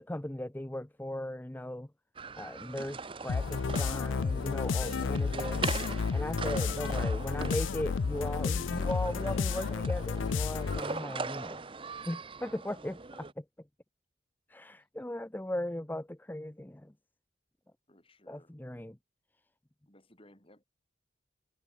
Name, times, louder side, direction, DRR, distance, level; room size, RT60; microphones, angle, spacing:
voice 1, 0.0-1.9 2.4-5.6 6.1-11.6 12.1-13.4 14.5-16.9 18.3-19.0, left 1 dB, 10° left, 0.5 m, -38 dB
sound 1, 2.1-13.3, right 4 dB, 25° right, 0.7 m, -41 dB
sound 2, 3.3-11.0, left 5 dB, 85° left, 0.5 m, -31 dB
voice 2, 14.7-15.1 17.9-18.5 19.9-20.6, left 1 dB, 30° left, 6.2 m, -61 dB
head